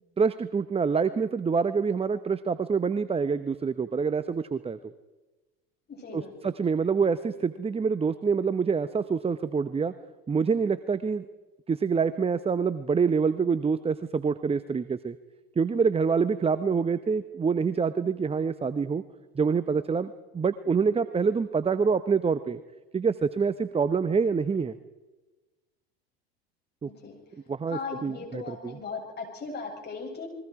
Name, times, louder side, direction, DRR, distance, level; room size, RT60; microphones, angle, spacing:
voice 1, 0.2-4.8 6.1-9.9 10.3-11.2 11.7-15.2 15.6-19.0 19.3-22.6 22.9-24.8 26.8-26.9 27.5-28.8, right 5 dB, 20° right, 13 dB, 0.9 m, -26 dB
voice 2, 5.9-6.3 26.8-27.2 27.7-30.3, left 4 dB, 35° left, 1 dB, 8.0 m, -38 dB
29.0 x 22.0 x 4.9 m, 1.2 s
hypercardioid pair, 80°, 31 cm